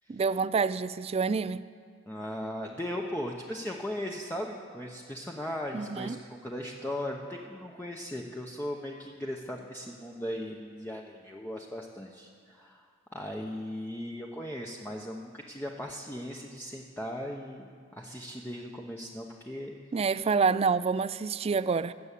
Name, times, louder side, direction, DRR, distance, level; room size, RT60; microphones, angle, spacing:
voice 1, 0.1-1.6 5.7-6.2 19.9-21.9, right 5 dB, 30° right, 0.3 m, -27 dB
voice 2, 2.1-12.9 13.1-17.7 17.9-19.7, left 1 dB, 10° left, 0.8 m, -38 dB
20.0 x 6.9 x 8.3 m
head